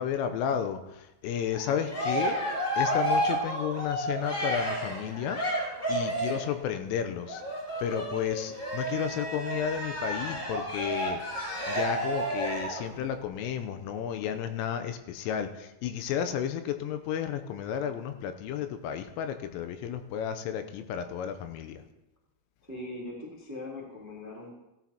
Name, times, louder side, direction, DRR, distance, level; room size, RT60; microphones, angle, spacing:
voice 1, 0.0-7.4 7.8-21.8, left 8 dB, 85° left, 8 dB, 3.2 m, -32 dB
Cheering, 1.5-6.5 7.3-12.8, right 1 dB, 20° left, 3.6 m, -31 dB
voice 2, 22.7-24.5, left 2 dB, 10° right, -4 dB, 0.9 m, -41 dB
16.0 x 12.0 x 2.8 m, 0.91 s
omnidirectional pair, 5.9 m